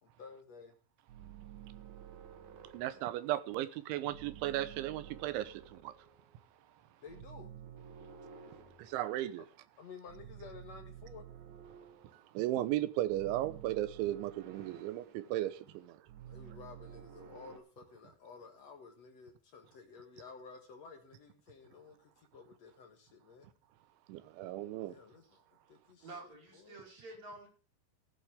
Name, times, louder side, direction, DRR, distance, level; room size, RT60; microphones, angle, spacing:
voice 1, 0.0-0.8 7.0-7.5 9.4-9.5 9.8-11.2 16.3-23.5 24.9-25.4 25.7-26.8, left 5 dB, 60° left, 1.8 m, -53 dB
sound 1, 1.1-3.6 4.1-6.6 7.1-9.5 10.1-12.4 13.1-17.6, right 9 dB, 60° right, 2.1 m, -52 dB
voice 2, 2.7-5.9 8.8-9.4 12.1-16.1 24.1-25.0, right 14 dB, 90° right, 3.4 m, -36 dB
voice 3, 26.0-27.5, right 2 dB, 40° right, 6.0 m, -49 dB
15.5 x 12.0 x 3.5 m
omnidirectional pair, 5.2 m